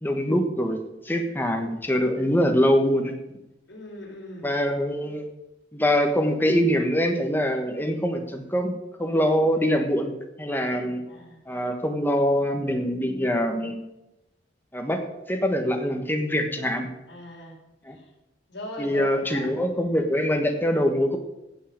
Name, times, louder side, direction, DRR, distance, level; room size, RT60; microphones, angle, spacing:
voice 1, 0.0-0.8 1.0-3.2 4.4-5.2 5.7-11.0 11.5-13.8 14.7-15.0 15.3-16.9 17.8-18.0 18.8-21.2, equal, 10° left, 4 dB, 1.3 m, -24 dB
voice 2, 3.7-4.5 11.1-11.4 17.1-17.6 17.9-18.1 18.5-19.5, left 2 dB, 65° left, -2 dB, 4.6 m, -39 dB
16.5 x 5.6 x 7.5 m, 0.91 s
head